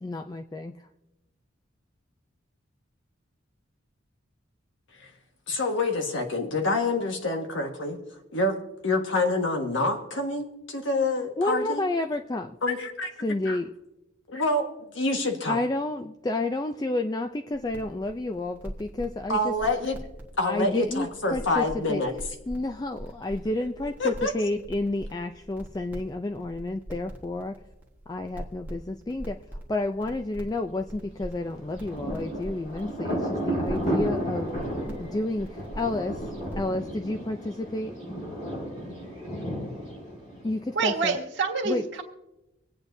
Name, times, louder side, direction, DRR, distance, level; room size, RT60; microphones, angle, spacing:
voice 1, 0.0-0.7 11.4-12.6 13.2-13.7 15.5-19.5 20.4-22.0 22.5-27.6 28.1-34.5 35.0-36.3 36.6-38.0 40.4-41.2 41.6-41.9, left 2 dB, 20° left, 5 dB, 0.3 m, -30 dB
voice 2, 5.5-8.0 8.3-11.8 12.6-13.1 13.4-13.6 14.3-14.7 14.9-15.6 19.3-20.0 20.4-22.1 24.0-24.3, left 2 dB, 70° left, 3 dB, 1.5 m, -27 dB
sound 1, 17.5-36.8, equal, 10° right, 1.3 m, -43 dB
Thunder, 31.4-40.9, right 1 dB, 40° left, 5.3 m, -33 dB
voice 3, 40.7-42.0, right 4 dB, 65° right, 0 dB, 1.8 m, -27 dB
25.0 x 8.7 x 2.7 m, 0.95 s
head